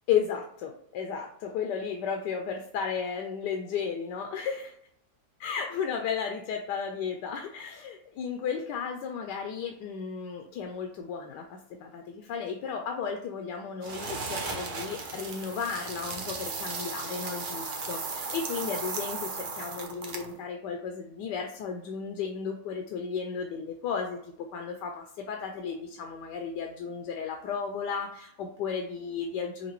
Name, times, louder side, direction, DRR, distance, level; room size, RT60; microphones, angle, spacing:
voice 1, 0.1-4.7 5.4-29.7, left 6 dB, 90° left, 3 dB, 1.2 m, -34 dB
sound 1, 13.8-20.4, right 4 dB, 85° right, 0.4 m, -36 dB
5.8 x 2.4 x 3.0 m, 0.72 s
omnidirectional pair, 1.8 m